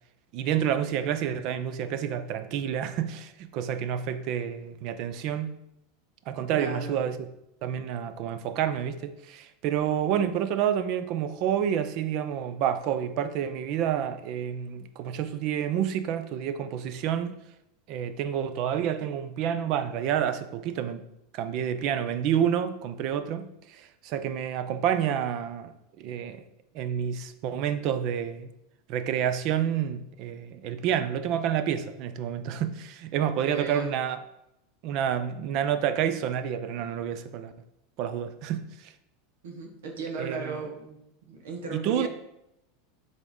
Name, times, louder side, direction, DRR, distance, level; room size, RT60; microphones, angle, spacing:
voice 1, 0.3-5.5 6.3-7.3 7.6-17.4 17.9-21.0 21.3-25.7 26.0-26.4 26.7-28.5 28.9-34.2 34.8-37.5 38.0-38.9 40.2-40.6 41.7-42.1, right 9 dB, 50° right, 0.6 m, -29 dB
voice 2, 6.5-7.0 33.4-33.9 39.4-42.1, right 3 dB, 85° right, 1.4 m, -36 dB
6.0 x 3.6 x 5.3 m
supercardioid pair, 135°, 0 cm